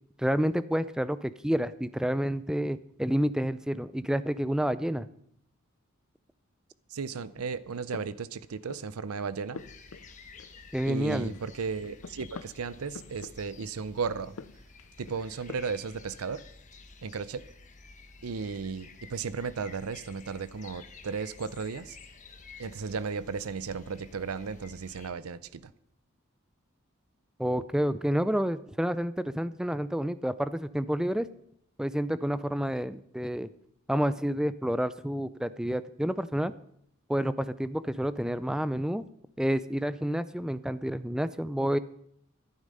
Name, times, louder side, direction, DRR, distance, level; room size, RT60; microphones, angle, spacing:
voice 1, 0.2-5.1 10.7-11.4 27.4-31.3 31.8-33.5 33.9-36.5 37.1-39.0 39.4-41.8, equal, 5° right, 14 dB, 0.4 m, -29 dB
voice 2, 6.9-9.6 10.9-14.3 15.0-16.4 17.0-17.5 18.2-22.0 22.6-25.7, right 5 dB, 90° right, 16 dB, 0.6 m, -35 dB
sound 1, 7.6-9.0 9.3-10.9 11.1-13.7 14.2-15.9, left 5 dB, 75° left, 0.6 m, -47 dB
sound 2, 9.6-25.1, left 4 dB, 35° left, 1.2 m, -52 dB
13.0 x 11.0 x 5.4 m, 0.70 s
head